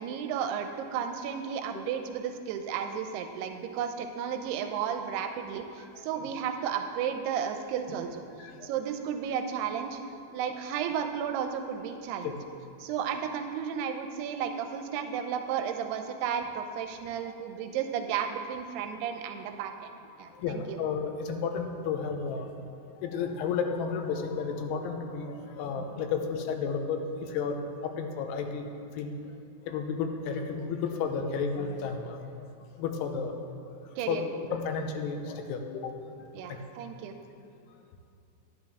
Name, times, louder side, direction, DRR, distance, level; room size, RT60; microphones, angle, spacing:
voice 1, 0.0-8.2 8.6-10.0 10.3-12.3 12.8-19.9 20.2-20.8 34.0-34.2 36.4-37.2, right 8 dB, 85° right, 6 dB, 2.6 m, -33 dB
voice 2, 8.4-8.7 12.2-12.4 17.2-17.3 20.4-22.5 23.0-28.7 29.0-29.1 29.7-32.2 32.8-33.3 34.1-34.2 34.5-35.9 36.5-36.6, left 5 dB, 90° left, 5 dB, 2.8 m, -32 dB
10.5 x 10.0 x 3.5 m, 2.5 s
omnidirectional pair, 4.6 m